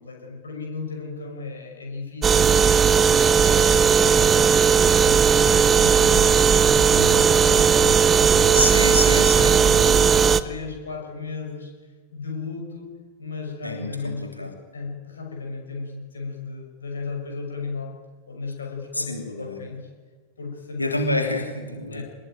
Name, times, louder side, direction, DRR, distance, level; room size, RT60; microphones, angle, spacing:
voice 1, 0.0-8.6 9.2-12.9 13.2-18.0 18.3-19.9 20.4-21.3 21.9-22.0, left 4 dB, 70° left, 1 dB, 6.1 m, -35 dB
sound 1, 2.2-10.4, right 6 dB, 20° right, 1.1 m, -17 dB
voice 2, 8.5-9.5 13.6-14.5 18.9-19.6 20.8-22.0, left 2 dB, 85° left, 3 dB, 3.1 m, -27 dB
26.0 x 21.0 x 9.2 m, 1.5 s
figure-of-eight pair, 90°, 0 cm